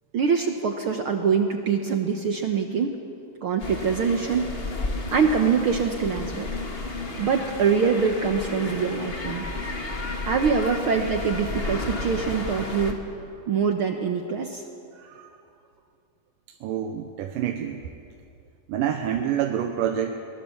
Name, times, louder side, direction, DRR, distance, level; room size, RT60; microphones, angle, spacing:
voice 1, 0.1-2.9 3.4-4.4 5.1-6.5 7.2-9.4 10.3-13.0 13.5-14.6, right 6 dB, 70° right, 4 dB, 1.2 m, -24 dB
sound 1, 3.6-12.9, left 2 dB, 35° left, 0.9 m, -32 dB
voice 2, 14.9-15.3 16.6-17.8 18.7-20.2, right 9 dB, 85° right, 5 dB, 2.6 m, -27 dB
22.5 x 20.5 x 7.2 m, 2.6 s
omnidirectional pair, 3.8 m